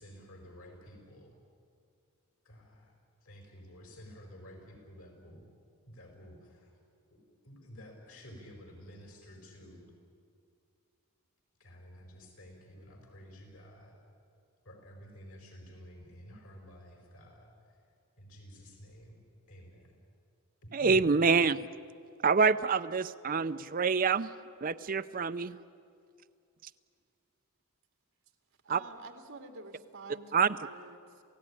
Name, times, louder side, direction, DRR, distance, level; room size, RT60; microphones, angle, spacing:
voice 1, 0.0-1.4 2.4-2.9 3.2-5.4 5.9-6.7 7.1-7.2 7.4-9.8 11.6-14.0 14.6-17.8 18.2-19.2 19.5-20.0 20.6-21.1, equal, 90° left, 2 dB, 5.0 m, -51 dB
voice 2, 20.7-21.7 22.2-24.3 24.6-25.6 28.7-28.8 30.3-30.5, right 5 dB, 40° right, 12 dB, 0.5 m, -26 dB
voice 3, 28.6-31.2, right 3 dB, 70° right, 4 dB, 2.2 m, -48 dB
28.0 x 16.5 x 9.9 m, 2.4 s
head